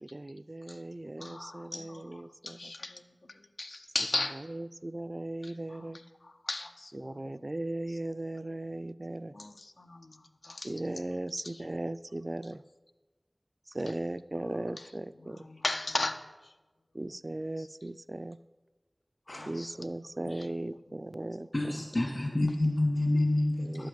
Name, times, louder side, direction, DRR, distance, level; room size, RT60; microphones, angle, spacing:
voice 1, 0.0-2.7 4.5-6.0 7.0-9.3 10.6-12.6 13.7-15.5 16.9-18.4 19.5-21.5 23.6-23.9, right 1 dB, 45° right, 15 dB, 0.3 m, -37 dB
voice 2, 1.2-4.5 5.4-7.3 7.9-8.0 9.3-11.0 11.4-11.7 12.0-12.1 12.4-12.5 13.9-14.0 14.3-16.6 17.6-17.7 19.3-20.0 20.3-20.9 23.8-23.9, left 2 dB, 85° left, 6 dB, 0.7 m, -39 dB
voice 3, 21.5-23.9, left 1 dB, 60° left, -5 dB, 1.9 m, -28 dB
11.5 x 7.8 x 5.2 m, 1.2 s
wide cardioid pair, 45°, 0 cm